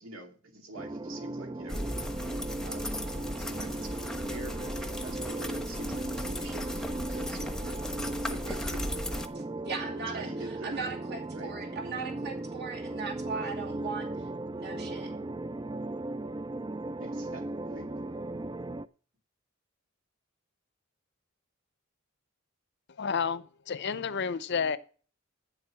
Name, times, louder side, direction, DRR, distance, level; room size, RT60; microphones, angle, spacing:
voice 1, 0.0-1.9 2.6-2.9 3.4-9.4 10.1-10.8 11.3-11.6 17.0-18.1, right 2 dB, 75° right, 2.6 m, -46 dB
sound 1, 0.8-18.9, right 2 dB, 20° right, 0.4 m, -37 dB
sound 2, 1.7-9.3, left 1 dB, 5° left, 1.0 m, -37 dB
voice 2, 9.6-14.1 14.5-15.1, right 4 dB, 55° right, 2.6 m, -38 dB
voice 3, 23.0-24.8, left 6 dB, 60° left, 0.6 m, -30 dB
8.8 x 7.6 x 6.3 m
head